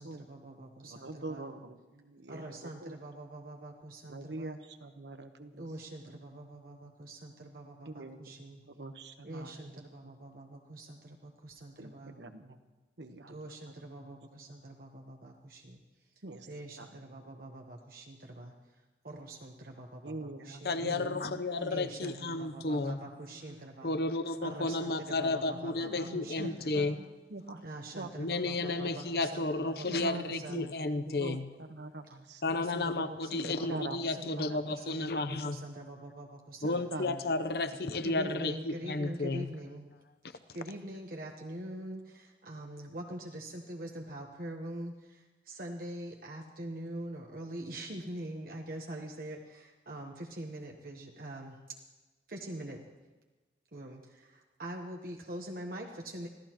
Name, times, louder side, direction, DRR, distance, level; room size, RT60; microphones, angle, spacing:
voice 1, 0.0-1.5 2.3-4.5 5.5-8.6 9.2-12.2 13.3-15.8 16.5-18.5 19.0-21.1 21.7-24.0 24.4-26.9 27.6-30.7 32.5-36.8 38.0-39.9 40.5-51.6 52.3-52.8 53.7-56.3, right 1 dB, 55° right, 1 dB, 1.1 m, -44 dB
voice 2, 0.8-3.0 4.1-5.7 6.0-6.1 7.8-8.4 8.6-9.6 11.8-12.6 13.0-13.3 16.2-16.5 16.8-16.9 20.0-22.7 23.1-23.9 25.5-27.6 27.9-28.1 29.8-30.7 31.0-32.4 33.7-34.8 36.9-37.2 37.8-37.9, right 2 dB, 85° right, 8 dB, 1.1 m, -44 dB
voice 3, 20.6-23.0 23.8-27.0 28.2-31.5 32.4-35.6 36.6-39.5, left 2 dB, 60° left, 11 dB, 0.8 m, -32 dB
25.5 x 15.5 x 3.0 m, 1.2 s
head